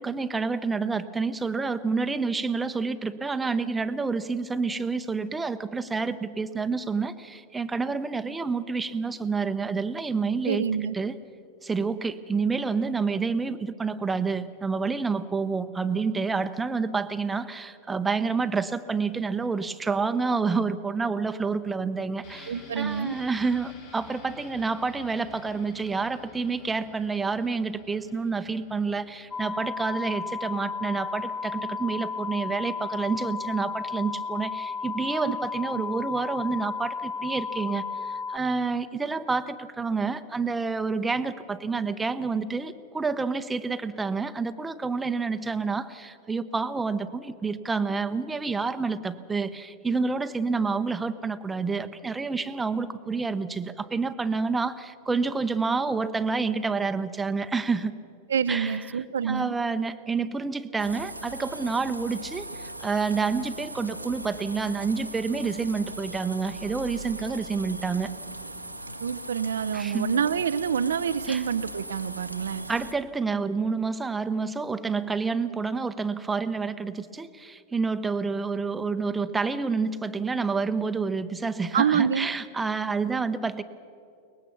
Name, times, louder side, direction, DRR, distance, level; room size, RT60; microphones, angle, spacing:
voice 1, 0.0-10.6 10.9-11.1 11.6-58.0 58.5-58.8 59.2-68.1 69.7-70.1 71.3-71.4 72.7-83.6, right 4 dB, 10° right, 10 dB, 0.8 m, -28 dB
voice 2, 10.4-10.9 22.5-23.2 58.3-59.5 69.0-72.7 81.7-82.3, right 7 dB, 65° right, 12 dB, 0.5 m, -27 dB
sound 1, 22.2-31.9 32.2-32.3, left 4 dB, 55° left, 4.9 m, -50 dB
sound 2, 29.3-38.4, left 5 dB, 25° left, 2.5 m, -33 dB
sound 3, 60.8-72.9, right 1 dB, 90° right, 1.0 m, -39 dB
22.5 x 19.5 x 7.1 m, 2.6 s
figure-of-eight pair, 90°, 0 cm